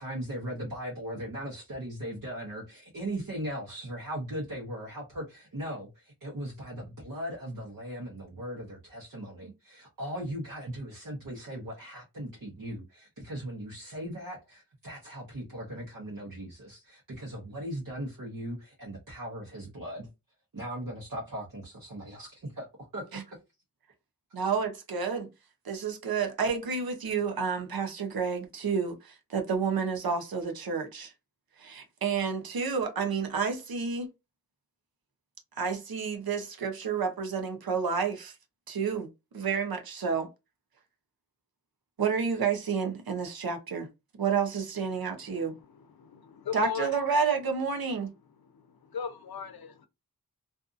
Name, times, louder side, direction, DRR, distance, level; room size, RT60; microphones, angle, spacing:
voice 1, 0.0-20.1 20.5-22.7 22.9-23.2, right 1 dB, 60° right, 1.0 m, -38 dB
voice 2, 24.3-25.3 25.6-31.1 31.6-34.1 35.6-38.4 38.7-39.1 39.3-40.3 42.0-43.9 44.2-45.5 46.5-48.1, right 5 dB, 85° right, 0.7 m, -30 dB
voice 3, 45.3-47.0 48.4-49.9, left 7 dB, 90° left, 0.6 m, -38 dB
2.6 x 2.4 x 2.4 m
wide cardioid pair, 55°, 35 cm